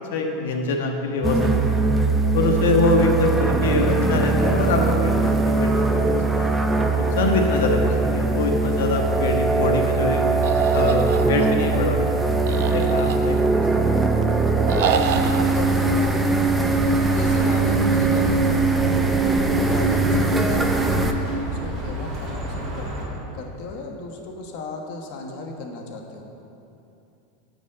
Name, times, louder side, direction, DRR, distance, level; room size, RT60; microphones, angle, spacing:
voice 1, 0.1-1.8 2.3-6.5 7.0-10.2 10.7-12.2 12.5-13.6, left 3 dB, 90° left, 2 dB, 1.4 m, -24 dB
sound 1, 1.2-21.1, right 3 dB, 5° right, 0.6 m, -21 dB
voice 2, 6.7-7.1 12.9-13.1 14.5-16.2 17.1-26.3, left 3 dB, 50° left, 2 dB, 1.3 m, -36 dB
sound 2, 10.4-11.8 12.5-13.6 14.7-15.4, right 8 dB, 85° right, 0.6 m, -27 dB
Bird, 16.5-23.0, right 1 dB, 25° right, 2.5 m, -33 dB
9.9 x 5.3 x 7.6 m, 2.8 s
supercardioid pair, 155°, 0 cm